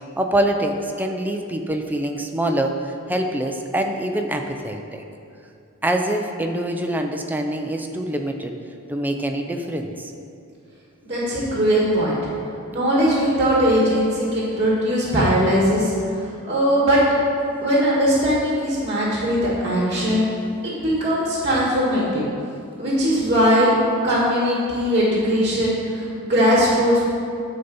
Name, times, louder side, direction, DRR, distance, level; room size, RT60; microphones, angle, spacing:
voice 1, 0.2-5.0 5.8-8.5 8.9-10.1, right 1 dB, 10° right, 3 dB, 0.5 m, -25 dB
voice 2, 11.0-12.2 12.7-17.0 17.6-20.3 20.6-22.2 22.8-23.7 24.0-27.1, equal, 25° right, -6 dB, 1.8 m, -20 dB
10.0 x 4.0 x 7.1 m, 2.5 s
head